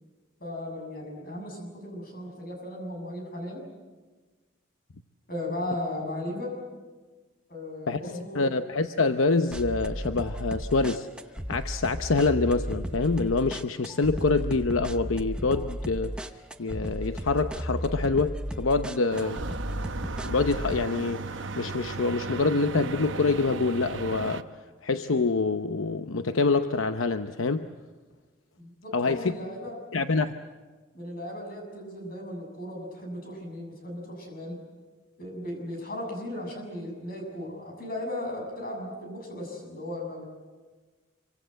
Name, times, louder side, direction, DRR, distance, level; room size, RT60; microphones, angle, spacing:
voice 1, 0.4-3.6 5.3-6.6 7.5-8.5 28.6-29.8 30.9-34.6 35.2-40.3, left 1 dB, 45° left, 1 dB, 7.3 m, -36 dB
voice 2, 7.9-11.1 11.5-16.2 16.6-19.4 20.2-24.5 24.8-27.7 28.9-29.3 29.9-30.3, left 3 dB, 80° left, 9 dB, 0.8 m, -26 dB
sound 1, 9.5-20.9, equal, 5° right, 0.7 m, -34 dB
sound 2, 19.1-24.4, right 3 dB, 70° right, 0.9 m, -36 dB
26.0 x 24.5 x 7.8 m, 1.3 s
head